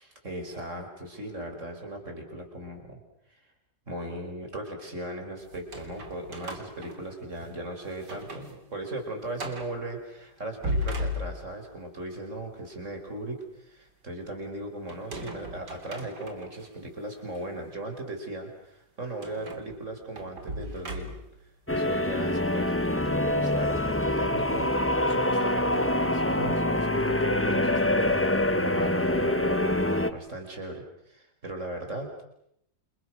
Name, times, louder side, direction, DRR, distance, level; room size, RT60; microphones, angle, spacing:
voice 1, 0.0-3.0 3.4-3.5 3.9-21.2 21.7-32.3, right 1 dB, 45° right, 4 dB, 5.9 m, -38 dB
sound 1, 5.5-7.6 8.0-8.5 8.9-9.0 9.4-9.8 10.4-11.7 14.9-16.7 17.3-17.4 19.2-21.4, left 1 dB, 85° right, 3.9 m, -36 dB
sound 2, 21.7-30.1, left 1 dB, 10° left, 1.1 m, -25 dB
30.0 x 28.5 x 6.4 m, 0.79 s
omnidirectional pair, 1.8 m